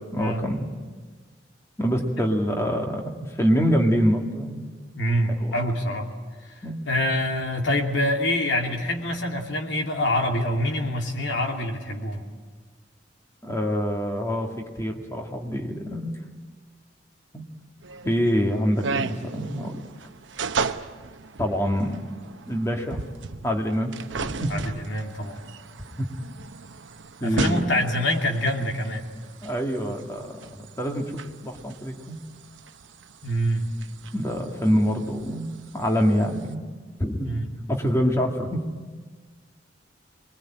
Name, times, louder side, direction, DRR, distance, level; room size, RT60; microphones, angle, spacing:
voice 1, 0.1-0.6 1.8-4.7 5.4-5.5 6.6-6.8 13.4-14.5 14.8-16.2 17.3-17.4 18.0-19.8 21.4-22.0 22.5-23.0 23.4-24.5 26.0-26.1 27.2-27.8 29.4-30.5 30.8-32.2 34.1-35.5 35.7-36.6 37.0-37.3 37.7-38.6, equal, 15° left, 2 dB, 2.2 m, -25 dB
voice 2, 4.9-6.1 6.4-12.2 24.5-25.4 27.2-29.1 30.5-30.7 33.2-33.7 37.2-37.5, left 1 dB, 80° left, 2 dB, 2.9 m, -26 dB
sound 1, 17.8-36.5, right 4 dB, 80° right, 0.8 m, -36 dB
25.0 x 21.0 x 8.9 m, 1.5 s
head